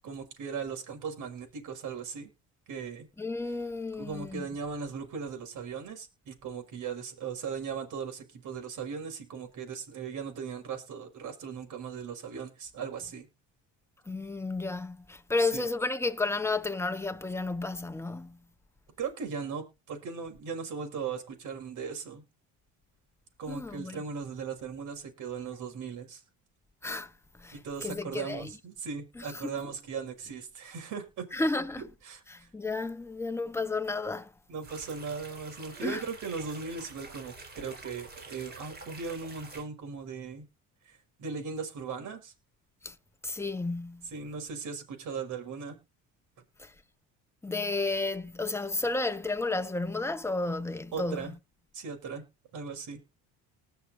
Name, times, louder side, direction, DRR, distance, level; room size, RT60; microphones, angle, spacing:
voice 1, 0.0-2.3 2.7-3.1 4.0-13.3 15.5-15.7 19.0-22.2 23.4-26.2 27.5-31.3 32.1-32.5 34.5-40.5 40.9-42.3 44.1-45.8 50.9-51.3 51.7-52.2 52.5-53.0, right 5 dB, 60° right, 5.8 m, -38 dB
voice 2, 3.2-4.5 14.1-18.4 23.5-24.0 26.8-28.6 29.1-29.5 31.3-31.9 32.3-34.3 35.8-36.0 42.8-43.0 43.2-44.1 46.6-46.7 47.4-51.4, left 3 dB, 5° left, 1.2 m, -32 dB
sound 1, 34.6-39.6, right 3 dB, 30° right, 5.1 m, -47 dB
20.0 x 6.9 x 2.8 m
supercardioid pair, 95°, 34 cm